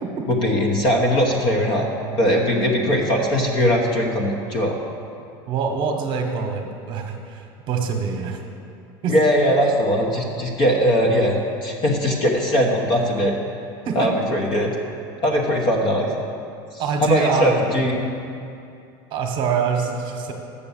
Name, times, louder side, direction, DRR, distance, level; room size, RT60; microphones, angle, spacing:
voice 1, 0.3-1.9 2.2-4.7 9.1-13.4 13.9-14.7 15.2-16.1 17.0-17.9, equal, 40° left, 0 dB, 1.1 m, -20 dB
voice 2, 5.5-8.4 9.0-9.2 13.8-14.1 16.8-17.6 19.1-20.3, right 6 dB, 45° right, 4 dB, 1.1 m, -25 dB
6.9 x 6.8 x 7.2 m, 2.5 s
supercardioid pair, 145°, 12 cm